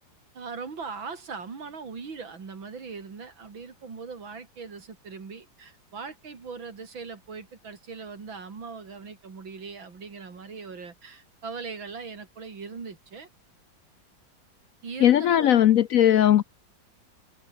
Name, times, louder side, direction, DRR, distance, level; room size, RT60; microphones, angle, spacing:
voice 1, 0.3-13.3 14.8-15.8, right 5 dB, 90° right, 3.9 m, -40 dB
voice 2, 15.0-16.4, left 11 dB, 70° left, 0.8 m, -18 dB
omnidirectional pair, 2.1 m